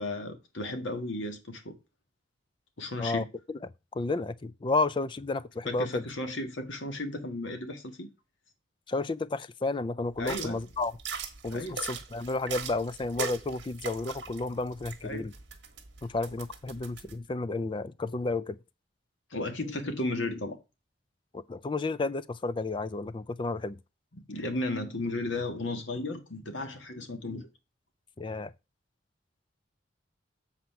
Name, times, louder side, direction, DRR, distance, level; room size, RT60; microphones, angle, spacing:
voice 1, 0.0-1.8 2.8-3.3 5.6-8.1 10.2-10.6 11.5-11.8 15.0-15.3 19.3-20.6 24.1-27.5, left 2 dB, 85° left, 1.6 m, -34 dB
voice 2, 3.0-3.6 3.9-6.1 8.9-11.0 11.4-15.3 16.0-18.6 21.3-23.8 28.2-28.5, left 3 dB, 25° left, 0.4 m, -32 dB
sound 1, 10.2-17.1, right 6 dB, 65° right, 1.4 m, -40 dB
7.8 x 4.3 x 5.8 m
head